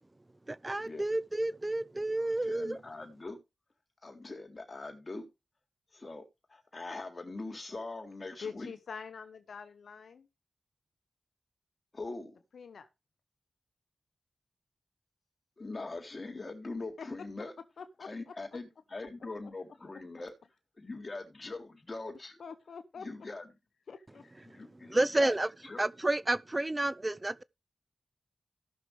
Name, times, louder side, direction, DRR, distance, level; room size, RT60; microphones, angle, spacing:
voice 1, 0.5-2.8 24.4-25.5 25.8-27.4, right 2 dB, 30° right, 0.6 m, -31 dB
voice 2, 2.2-3.4 4.0-5.3 5.9-8.7 11.9-12.4 15.6-17.5 18.0-20.3 20.8-22.3 23.0-23.5 24.5-25.3 25.7-25.8, left 3 dB, 45° left, 3.6 m, -42 dB
voice 3, 8.4-10.3 12.5-12.9 17.0-17.1 17.8-18.1 22.4-23.1 23.9-24.5, left 5 dB, 85° left, 1.0 m, -45 dB
17.5 x 6.5 x 3.3 m
cardioid pair, 45°, 0 cm